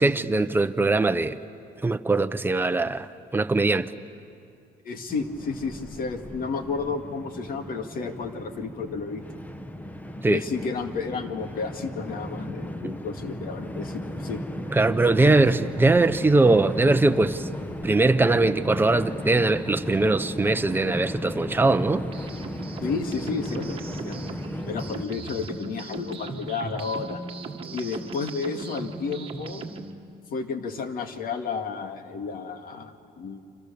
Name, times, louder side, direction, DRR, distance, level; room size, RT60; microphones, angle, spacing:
voice 1, 0.0-1.4 1.8-3.1 3.3-3.9 10.2-10.4 12.8-12.9 14.7-17.4 17.8-22.0, right 2 dB, 10° right, 0.9 m, -21 dB
voice 2, 4.8-9.2 10.3-14.4 15.2-15.5 22.8-24.3 24.6-27.2 27.7-29.6 30.3-33.4, left 5 dB, 60° left, 2.0 m, -32 dB
Train, 5.1-25.0, equal, 10° left, 1.1 m, -35 dB
sound 1, 21.6-29.9, right 3 dB, 35° right, 1.7 m, -38 dB
29.0 x 26.0 x 6.9 m
cardioid pair, 110°, 17 cm